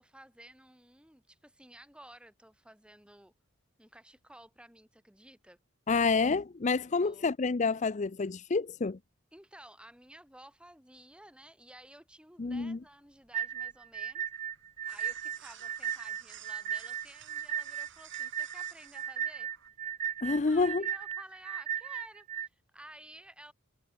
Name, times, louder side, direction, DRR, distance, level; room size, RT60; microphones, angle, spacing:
voice 1, 0.0-3.3 3.8-5.6 7.0-7.3 9.3-14.3 14.9-19.5 20.5-23.5, right 1 dB, 5° right, 7.7 m, -54 dB
voice 2, 5.9-9.0 12.4-12.8 20.2-20.8, left 4 dB, 35° left, 0.5 m, -28 dB
sound 1, 12.7-21.1, right 9 dB, 60° right, 7.6 m, -56 dB
sound 2, 13.3-22.5, right 9 dB, 35° right, 0.7 m, -36 dB
head